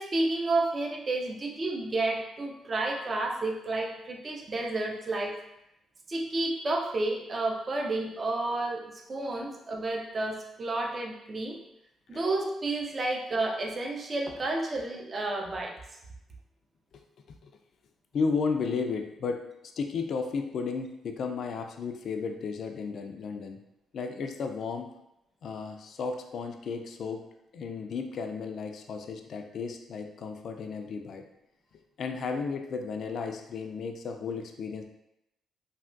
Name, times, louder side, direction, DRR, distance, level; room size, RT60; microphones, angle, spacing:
voice 1, 0.0-5.4 6.1-8.8 9.1-11.6 12.1-15.7, right 2 dB, 35° right, 1 dB, 0.4 m, -31 dB
voice 2, 18.1-23.6 23.9-24.9 25.4-27.2 27.5-31.2 32.0-34.8, left 5 dB, 60° left, 4 dB, 0.3 m, -33 dB
3.3 x 2.2 x 2.5 m, 0.84 s
cardioid pair, 90°, 0 cm